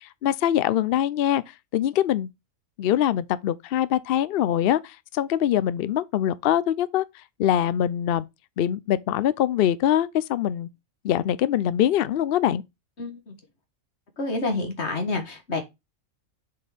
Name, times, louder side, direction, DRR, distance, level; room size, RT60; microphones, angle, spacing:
voice 1, 0.0-1.4 1.7-2.3 2.8-7.0 7.4-8.2 8.6-10.7 11.0-12.6, left 11 dB, 70° left, 0.5 m, -23 dB
voice 2, 13.0-13.3 14.2-15.6, left 3 dB, 50° left, 2.0 m, -28 dB
7.6 x 4.2 x 3.5 m
omnidirectional pair, 1.5 m